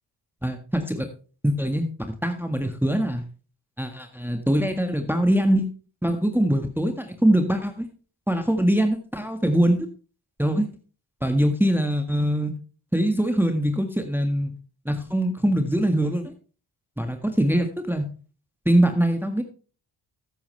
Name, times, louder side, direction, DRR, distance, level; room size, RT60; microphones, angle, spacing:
voice 1, 0.4-1.1 1.4-1.9 2.2-3.2 3.8-5.7 6.0-7.9 8.3-9.9 10.4-10.7 11.2-12.5 12.9-14.5 14.8-16.3 17.0-18.1 18.6-19.4, right 1 dB, 5° right, 6 dB, 1.6 m, -22 dB
13.5 x 8.7 x 3.3 m, 0.37 s
cardioid pair, 50°, 49 cm